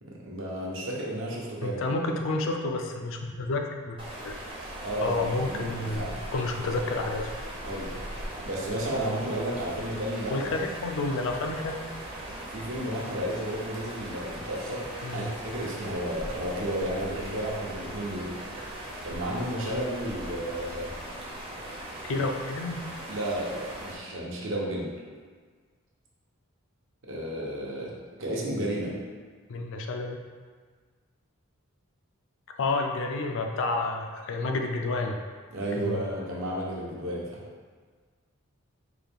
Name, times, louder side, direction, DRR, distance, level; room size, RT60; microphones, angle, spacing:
voice 1, 0.0-1.8 4.8-6.2 7.6-7.9 8.4-10.5 12.5-18.3 19.0-20.9 23.1-24.9 27.1-27.9 28.2-28.9 35.5-37.4, right 1 dB, 65° right, -4 dB, 0.8 m, -32 dB
voice 2, 1.6-4.0 4.2-4.3 5.0-7.3 10.3-11.8 15.0-15.2 22.0-22.8 29.5-30.2 32.6-35.2 35.8-36.0, left 2 dB, 65° left, 3 dB, 0.4 m, -30 dB
sound 1, 4.0-23.9, right 1 dB, 25° right, 0.6 m, -39 dB
3.9 x 2.5 x 3.4 m, 1.5 s
head